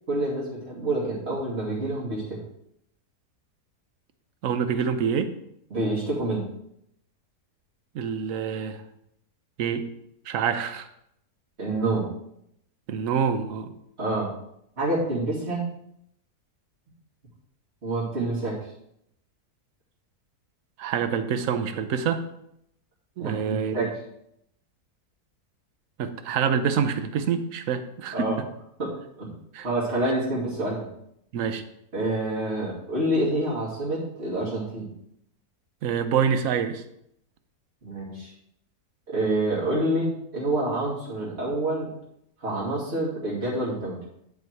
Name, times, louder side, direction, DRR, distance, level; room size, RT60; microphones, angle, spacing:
voice 1, 0.1-2.4 5.7-6.4 11.6-12.1 14.0-14.3 14.8-15.6 17.8-18.6 23.2-23.9 28.1-28.4 28.8-29.3 29.6-30.9 31.9-34.9 37.8-38.3 39.1-41.9 42.4-44.0, right 1 dB, 40° right, -7 dB, 2.8 m, -27 dB
voice 2, 4.4-5.3 7.9-8.8 9.6-9.8 10.3-10.9 12.9-13.7 20.8-22.2 23.2-23.9 26.0-28.3 29.5-29.7 31.3-31.6 35.8-36.8, right 7 dB, 60° right, 9 dB, 1.1 m, -26 dB
10.5 x 4.7 x 4.6 m, 0.76 s
omnidirectional pair, 1.7 m